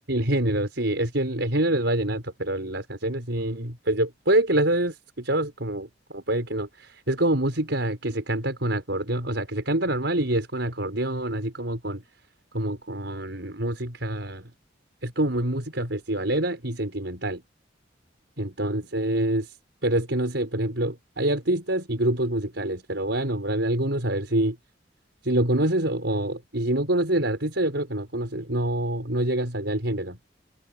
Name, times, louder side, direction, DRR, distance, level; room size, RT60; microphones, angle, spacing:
voice 1, 0.1-12.0 12.5-14.5 15.0-17.4 18.4-19.5 19.8-24.6 25.2-30.2, right 1 dB, 70° right, 6.4 m, -26 dB
head